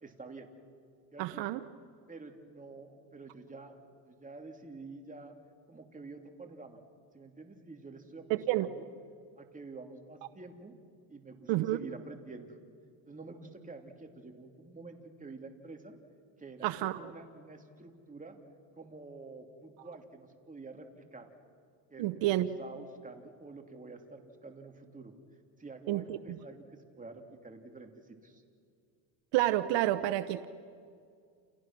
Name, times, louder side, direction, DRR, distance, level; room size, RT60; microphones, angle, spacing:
voice 1, 0.0-0.5 1.1-1.4 2.1-3.8 4.1-5.3 5.7-6.8 7.1-8.9 9.4-10.8 11.1-12.6 13.1-15.9 16.4-18.4 18.8-21.3 21.9-22.1 22.4-25.1 25.6-28.4, right 3 dB, 15° right, 3 dB, 3.1 m, -48 dB
voice 2, 1.2-1.6 8.3-8.7 11.5-11.8 16.6-17.0 22.0-22.5 25.9-26.2 29.3-30.5, right 15 dB, 75° right, 10 dB, 1.0 m, -29 dB
29.5 x 29.5 x 6.1 m, 2.3 s
cardioid pair, 100°, 44 cm